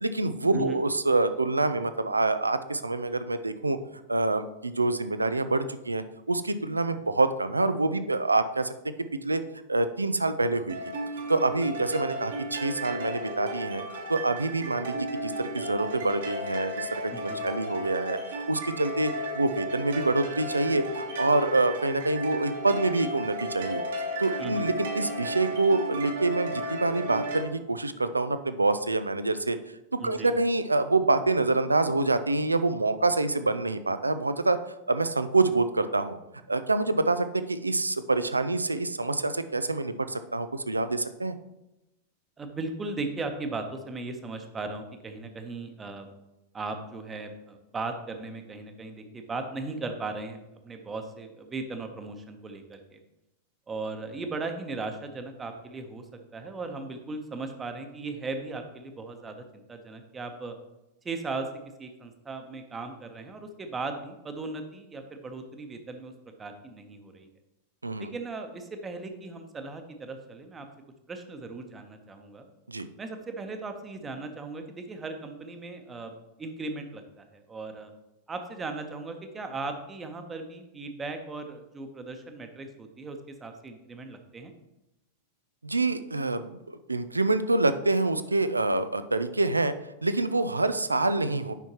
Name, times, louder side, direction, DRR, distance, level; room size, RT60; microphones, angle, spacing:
voice 1, 0.0-3.8 4.1-8.7 9.2-9.4 9.7-10.8 11.3-13.8 14.1-15.0 15.2-18.2 18.5-29.6 30.0-34.6 34.9-36.2 36.5-41.4 67.8-68.1 72.7-72.9 85.6-89.7 90.0-91.5, right 2 dB, 80° right, 11 dB, 0.4 m, -26 dB
sound 1, 10.7-27.4, right 1 dB, 65° right, 1.4 m, -34 dB
voice 2, 17.1-17.4 24.4-24.6 30.0-30.3 42.4-46.1 46.5-53.0 53.7-56.0 56.3-60.6 61.0-61.5 61.8-66.1 66.4-67.3 68.0-70.7 71.1-72.5 73.0-76.1 76.4-77.9 78.3-84.5, right 3 dB, 15° right, 6 dB, 0.9 m, -37 dB
9.0 x 5.6 x 3.0 m, 0.95 s
figure-of-eight pair, 90°, 0 cm